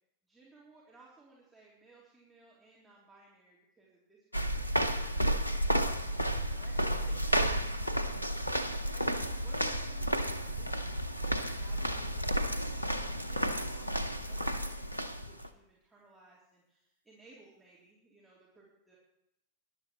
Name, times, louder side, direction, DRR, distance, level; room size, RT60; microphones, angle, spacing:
voice 1, 0.3-19.0, right 3 dB, 10° right, -7 dB, 3.2 m, -60 dB
sound 1, 4.3-15.5, equal, 85° left, 0.7 m, -32 dB
19.5 x 11.5 x 3.1 m, 0.85 s
figure-of-eight pair, 90°, 0 cm